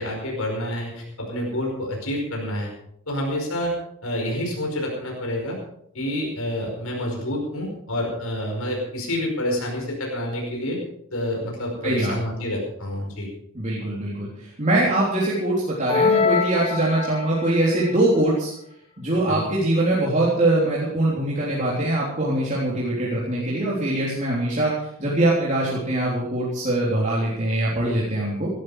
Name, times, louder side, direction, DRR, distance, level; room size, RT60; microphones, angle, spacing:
voice 1, 0.0-2.7 3.1-3.7 4.0-5.6 5.9-10.8 11.1-13.3 19.3-19.4, left 1 dB, 80° left, 0 dB, 5.1 m, -28 dB
voice 2, 11.8-12.1 13.5-18.5 19.0-24.7 25.0-28.5, right 1 dB, 35° right, -6 dB, 3.7 m, -22 dB
sound 1, 15.9-17.6, left 5 dB, 25° left, 1.0 m, -22 dB
18.0 x 12.5 x 5.0 m, 0.73 s
head